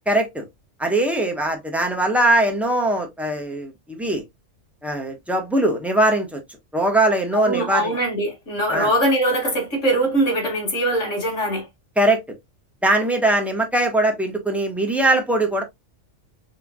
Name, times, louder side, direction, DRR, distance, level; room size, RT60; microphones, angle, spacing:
voice 1, 0.1-0.5 0.8-4.2 4.8-6.4 6.7-7.9 8.7-8.9 12.0-12.2 12.8-15.6, right 1 dB, ahead, 1.1 m, -21 dB
voice 2, 7.3-11.7, right 1 dB, 80° left, 2.4 m, -22 dB
6.0 x 3.3 x 2.3 m
omnidirectional pair, 1.3 m